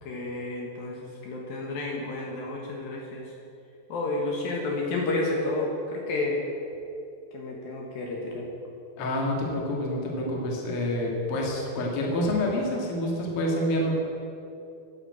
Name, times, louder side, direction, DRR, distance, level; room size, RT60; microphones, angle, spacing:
voice 1, 0.0-3.3 3.9-6.4 7.3-8.4, left 2 dB, 65° left, -1 dB, 3.0 m, -31 dB
voice 2, 9.0-14.0, left 1 dB, 45° left, -1 dB, 2.4 m, -27 dB
10.5 x 9.4 x 8.6 m, 2.7 s
omnidirectional pair, 4.7 m